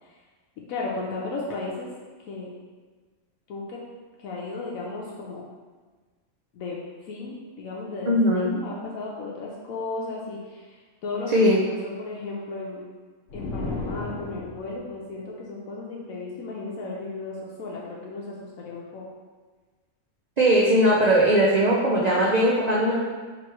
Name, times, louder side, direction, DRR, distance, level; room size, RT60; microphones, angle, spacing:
voice 1, 0.7-1.9 2.3-2.5 3.5-3.8 4.2-5.5 6.5-6.8 7.1-12.9 13.3-19.0, left 3 dB, 75° left, -3 dB, 1.0 m, -35 dB
voice 2, 8.1-8.5 11.3-11.6 20.4-23.0, equal, 70° right, -5 dB, 0.4 m, -19 dB
sound 1, 13.3-14.9, left 2 dB, 55° left, 0.8 m, -33 dB
3.4 x 3.0 x 4.5 m, 1.4 s
omnidirectional pair, 1.5 m